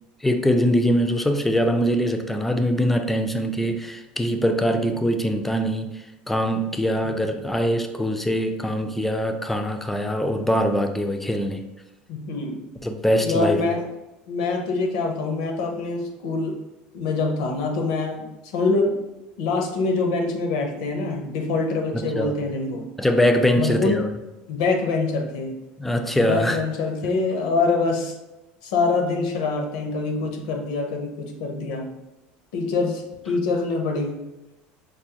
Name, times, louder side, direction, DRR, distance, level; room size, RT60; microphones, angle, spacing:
voice 1, 0.2-11.7 12.8-13.6 21.9-22.4 23.0-24.1 25.8-26.6, equal, 5° left, 6 dB, 0.3 m, -23 dB
voice 2, 12.1-12.6 13.2-13.8 14.3-16.6 16.9-19.0 19.4-22.8 23.6-24.1 24.5-25.6 26.2-28.1 28.6-31.9 32.5-34.2, left 3 dB, 85° left, 3 dB, 0.7 m, -25 dB
4.9 x 2.0 x 2.8 m, 1.0 s
supercardioid pair, 130°, 4 cm